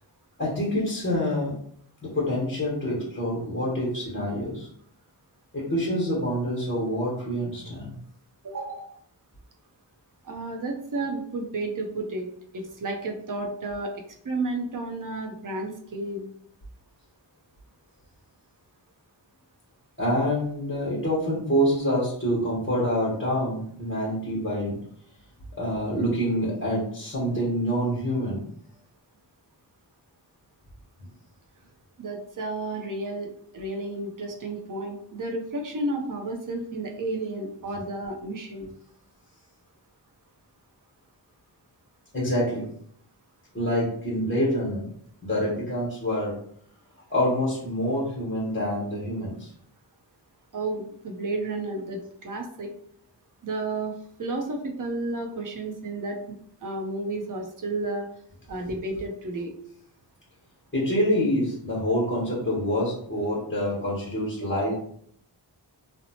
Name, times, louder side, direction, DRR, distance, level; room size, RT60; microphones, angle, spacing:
voice 1, 0.4-1.5 2.1-4.7 5.5-7.9 20.0-24.7 25.6-28.4 42.1-42.6 43.5-44.9 45.2-46.4 47.1-49.5 60.7-64.8, equal, 25° left, -7 dB, 1.0 m, -26 dB
voice 2, 8.4-9.0 10.2-12.3 12.5-16.3 32.0-38.7 50.5-52.7 53.4-58.1 58.5-59.5 64.5-64.7, right 2 dB, 45° right, 2 dB, 0.6 m, -32 dB
2.8 x 2.0 x 2.7 m, 0.65 s
wide cardioid pair, 75°, 44 cm